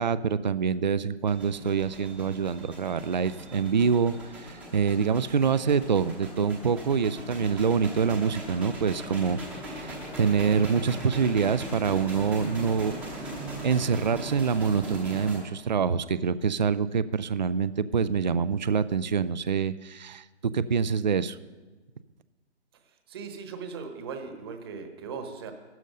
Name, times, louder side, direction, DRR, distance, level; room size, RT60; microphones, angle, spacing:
voice 1, 0.0-9.4 9.7-12.9 13.6-20.2 20.5-21.4, right 6 dB, 40° right, 16 dB, 0.4 m, -26 dB
sound 1, 1.3-15.4, equal, 5° right, 0.8 m, -39 dB
voice 2, 22.9-25.5, right 5 dB, 20° right, 6 dB, 1.2 m, -39 dB
14.5 x 12.0 x 5.4 m, 1.3 s
figure-of-eight pair, 150°, 34 cm